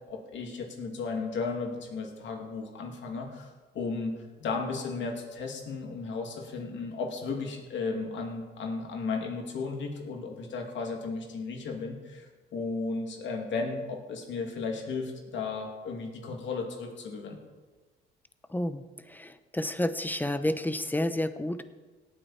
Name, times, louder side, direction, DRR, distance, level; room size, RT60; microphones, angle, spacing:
voice 1, 0.1-3.5 3.7-17.4, left 4 dB, 70° left, 1 dB, 2.5 m, -34 dB
voice 2, 18.5-21.6, left 1 dB, 10° left, 11 dB, 0.8 m, -30 dB
18.0 x 8.9 x 4.3 m, 1.3 s
cardioid pair, 90°, 20 cm